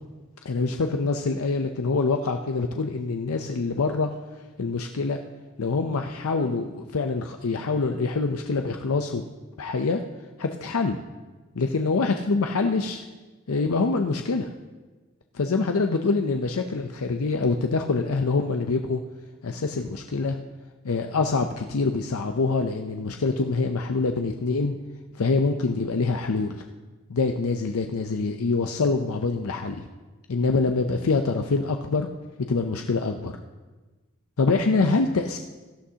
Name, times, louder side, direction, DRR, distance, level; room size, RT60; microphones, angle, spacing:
voice 1, 0.4-4.1 4.6-5.2 5.6-9.2 9.6-10.0 10.4-11.0 11.6-13.0 13.5-14.5 15.3-19.0 19.4-20.4 20.8-24.7 25.1-26.6 27.1-29.8 30.3-32.1 32.5-33.3 34.4-35.4, left 3 dB, 85° left, 5 dB, 0.6 m, -25 dB
17.5 x 12.5 x 2.8 m, 1.2 s
head